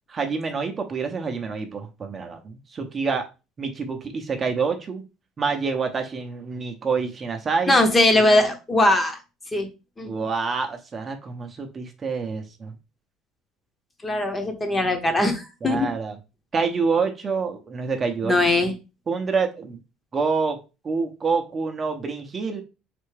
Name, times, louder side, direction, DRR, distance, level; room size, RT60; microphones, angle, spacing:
voice 1, 0.1-3.2 3.6-5.0 5.4-7.7 8.1-8.2 10.1-12.7 15.6-16.1 16.5-18.3 19.1-19.8 20.1-20.6 20.8-22.6, right 5 dB, 25° right, 5 dB, 0.7 m, -27 dB
voice 2, 7.7-9.2 9.5-9.7 10.0-10.1 14.0-15.9 18.2-18.8, left 1 dB, 15° left, 6 dB, 0.8 m, -20 dB
4.4 x 3.3 x 3.2 m, 0.29 s
cardioid pair, 140°, 0 cm